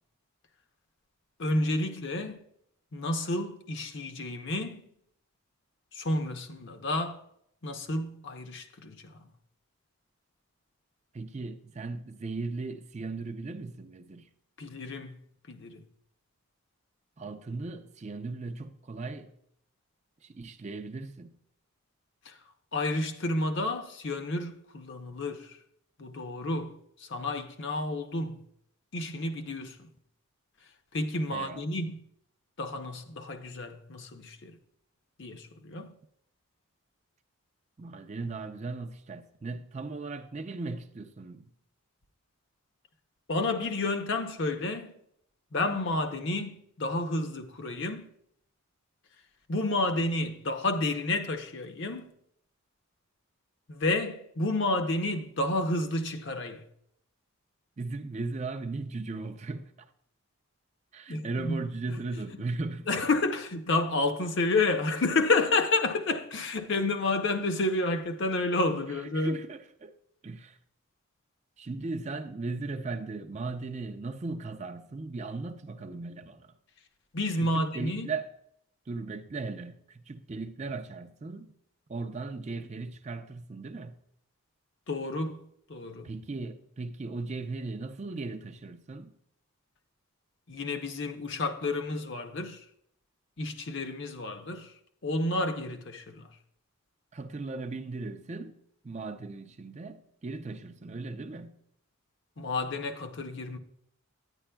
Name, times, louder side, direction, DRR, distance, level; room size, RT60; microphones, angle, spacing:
voice 1, 1.4-2.4 2.9-4.9 5.9-7.2 7.6-9.2 14.6-15.2 15.5-15.8 22.3-22.4 22.7-25.5 26.0-28.4 28.9-29.9 30.9-32.0 32.6-34.6 35.2-35.9 43.3-44.9 45.5-48.1 49.5-52.1 53.7-56.6 61.1-61.7 62.9-69.3 77.1-78.1 84.9-86.1 90.5-92.6 93.4-94.7 95.0-96.3 102.4-103.6, left 2 dB, 55° left, 0.7 m, -30 dB
voice 2, 11.1-14.3 17.2-19.3 20.2-21.4 31.3-31.6 37.8-41.5 57.8-59.9 60.9-63.1 68.9-70.0 70.2-70.6 71.6-76.6 77.4-78.3 78.9-81.5 81.9-84.0 86.0-89.1 97.1-98.6 98.8-101.6, right 3 dB, 30° right, 0.4 m, -37 dB
9.9 x 9.5 x 2.2 m
head